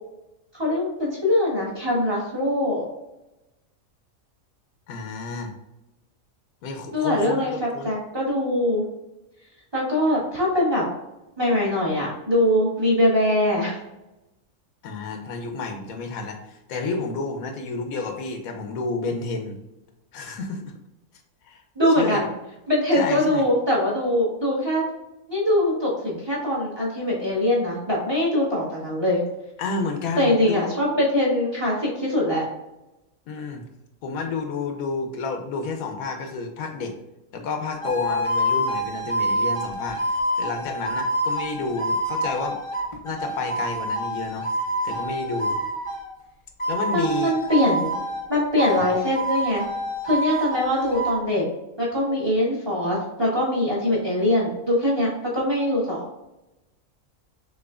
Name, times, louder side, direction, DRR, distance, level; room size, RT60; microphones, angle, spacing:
voice 1, 0.5-2.8 6.9-7.5 7.8-8.8 9.7-10.8 11.4-13.8 21.7-22.3 22.7-24.8 25.3-29.2 30.2-32.5 46.9-47.9 48.3-49.6 50.0-51.5 51.8-56.0, left 1 dB, 20° right, -5 dB, 1.3 m, -22 dB
voice 2, 4.9-5.5 6.6-7.9 14.8-19.6 20.1-20.6 21.4-21.6 22.0-22.2 22.9-23.5 29.6-30.7 33.3-33.6 34.0-37.0 37.3-42.6 43.0-44.5 44.8-45.6 46.7-47.3, left 4 dB, 85° left, 5 dB, 1.1 m, -30 dB
sound 1, 37.8-46.1 46.6-48.3 48.6-51.2, right 1 dB, 30° left, 0.7 m, -27 dB
6.0 x 3.0 x 2.4 m, 0.95 s
omnidirectional pair, 1.5 m